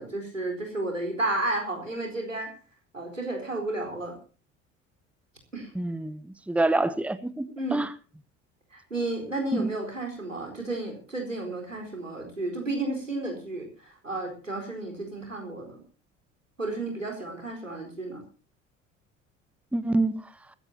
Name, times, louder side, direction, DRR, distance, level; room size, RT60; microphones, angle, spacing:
voice 1, 0.0-2.5 2.9-4.2 5.5-5.7 7.6-7.8 8.7-15.8 16.6-18.2, right 2 dB, 90° right, 3 dB, 4.4 m, -32 dB
voice 2, 5.7-7.9 9.5-9.7 19.7-20.3, right 2 dB, 5° right, 15 dB, 1.2 m, -27 dB
21.0 x 15.0 x 2.8 m, 0.37 s
figure-of-eight pair, 60°, 37 cm